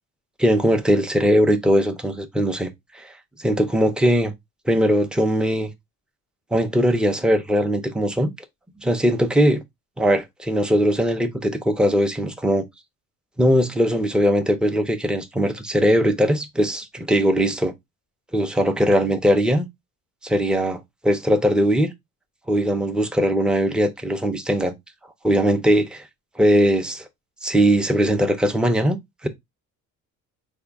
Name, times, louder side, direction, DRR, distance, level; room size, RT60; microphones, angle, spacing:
voice 1, 0.4-2.7 2.9-3.1 3.4-4.3 4.7-5.7 6.5-8.3 8.8-9.6 10.0-12.6 13.4-17.7 18.3-19.7 20.2-21.9 22.5-24.7 25.2-26.1 26.4-27.1 27.4-29.3, equal, 5° right, 0.5 m, -20 dB
4.3 x 2.2 x 3.4 m
cardioid pair, 120°, 31 cm